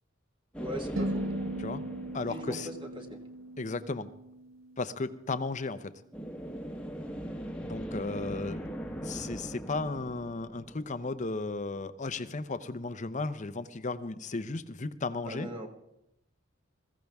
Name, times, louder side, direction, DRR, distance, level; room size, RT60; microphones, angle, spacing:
sound 1, 0.5-3.3 6.1-11.5, equal, 5° left, 1.2 m, -40 dB
voice 1, 0.6-1.3 2.3-3.2 15.2-15.7, right 1 dB, 25° right, 3 dB, 1.6 m, -39 dB
sound 2, 1.0-5.3, right 1 dB, 75° right, 0.7 m, -38 dB
voice 2, 2.1-2.7 3.6-4.1 4.8-5.9 7.6-8.6 9.0-15.5, left 3 dB, 35° left, 12 dB, 0.7 m, -35 dB
21.0 x 15.5 x 3.5 m, 0.83 s
head